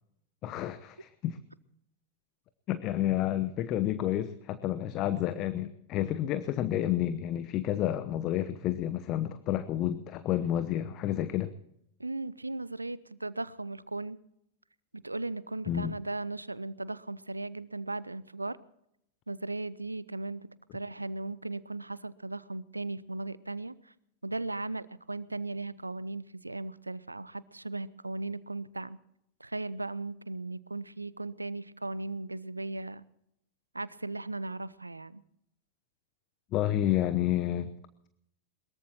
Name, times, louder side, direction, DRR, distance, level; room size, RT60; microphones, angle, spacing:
voice 1, 0.4-1.4 2.7-11.5 15.7-16.0 36.5-37.7, left 12 dB, 35° left, 13 dB, 0.9 m, -30 dB
voice 2, 12.0-14.2 14.9-18.6 19.3-23.9 24.2-29.0 29.4-33.0 33.7-35.2, right 2 dB, 85° right, 19 dB, 0.7 m, -37 dB
22.5 x 21.5 x 3.0 m, 0.76 s
figure-of-eight pair, 90°, 0 cm